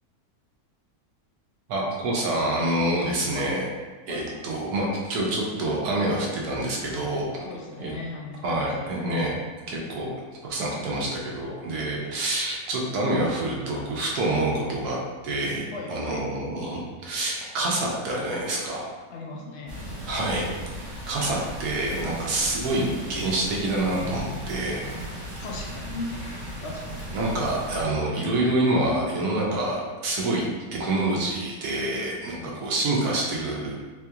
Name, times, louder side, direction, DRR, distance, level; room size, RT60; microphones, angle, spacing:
voice 1, 1.7-3.7 4.1-7.3 7.8-7.9 8.4-9.3 9.7-10.1 10.4-15.0 15.2-18.9 20.1-20.5 20.8-24.8 27.1-33.8, right 1 dB, 80° right, -2 dB, 1.2 m, -27 dB
voice 2, 7.4-9.1 15.7-16.4 19.1-19.9 22.4-22.6 25.4-27.2 32.4-32.6, left 2 dB, 70° left, -1 dB, 0.7 m, -38 dB
sound 1, 19.7-27.8, right 1 dB, 65° right, 1.4 m, -37 dB
4.1 x 2.3 x 2.8 m, 1.3 s
omnidirectional pair, 1.6 m